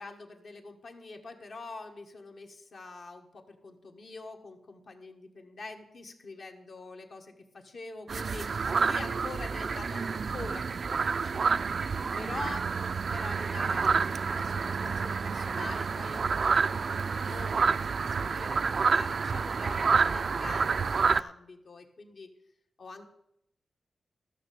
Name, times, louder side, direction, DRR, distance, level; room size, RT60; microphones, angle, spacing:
voice 1, 0.0-11.6 12.1-12.7 13.1-13.9 14.2-22.3 22.8-23.1, left 3 dB, 65° left, 3 dB, 1.5 m, -45 dB
sound 1, 8.1-21.2, right 5 dB, 60° right, 0.3 m, -28 dB
13.0 x 6.6 x 6.8 m, 0.80 s
cardioid pair, 75°, 0 cm